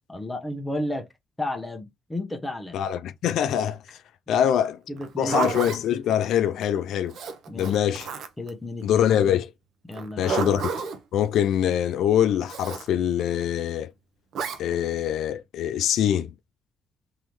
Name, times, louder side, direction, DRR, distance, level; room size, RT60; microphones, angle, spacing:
voice 1, 0.1-1.1 1.4-2.8 4.3-4.5 4.9-5.5 7.5-7.8 8.4-9.1 9.9-10.4, left 1 dB, 10° left, 1.0 m, -33 dB
voice 2, 2.7-4.0 4.3-4.8 5.2-7.2 7.6-8.1 8.8-9.5 10.2-10.7 11.1-13.9 14.6-16.3, left 10 dB, 80° left, 0.4 m, -24 dB
Zipper (clothing), 5.0-5.8 7.1-8.5 9.9-11.0 12.5-12.9 14.3-14.6, right 6 dB, 75° right, 0.9 m, -30 dB
3.7 x 3.0 x 3.0 m
cardioid pair, 90°, 0 cm